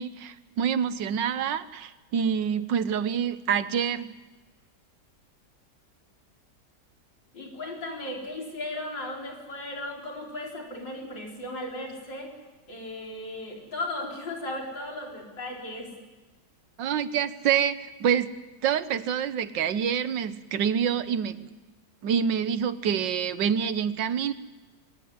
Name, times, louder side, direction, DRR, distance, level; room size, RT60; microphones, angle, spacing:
voice 1, 0.0-4.1 16.8-18.3 18.6-21.5 22.0-24.3, right 8 dB, 85° right, 13 dB, 1.7 m, -27 dB
voice 2, 7.3-12.4 12.7-15.9, left 1 dB, 85° left, -1 dB, 5.3 m, -36 dB
23.0 x 19.0 x 9.6 m, 1.2 s
omnidirectional pair, 1.9 m